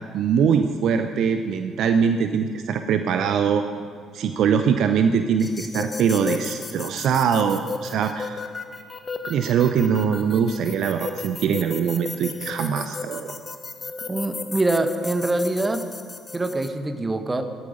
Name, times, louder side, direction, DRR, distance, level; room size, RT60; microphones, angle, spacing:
voice 1, 0.1-3.6 4.1-8.4 9.3-13.4, right 7 dB, 55° right, 8 dB, 0.7 m, -22 dB
sound 1, 5.4-16.7, left 4 dB, 30° left, 1.0 m, -35 dB
voice 2, 14.1-15.8 16.3-17.4, right 2 dB, 20° right, 7 dB, 1.4 m, -24 dB
15.5 x 13.0 x 5.2 m, 2.2 s
figure-of-eight pair, 50°, 0 cm